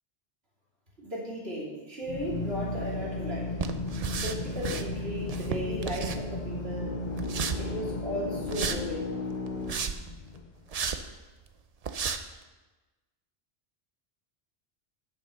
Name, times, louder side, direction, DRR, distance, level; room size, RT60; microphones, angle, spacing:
voice 1, 1.0-3.6 4.2-6.9 7.6-9.1, equal, 70° right, -6 dB, 3.4 m, -36 dB
Drill, 2.0-10.7, left 3 dB, 45° left, 0.9 m, -35 dB
sound 1, 3.6-4.9 5.2-6.5 7.2-7.6 8.5-8.8 9.5-10.1 10.7-11.0 11.5-11.6 11.8-12.2, right 6 dB, 45° right, 0.6 m, -33 dB
8.6 x 6.8 x 6.4 m, 1.2 s
omnidirectional pair, 1.1 m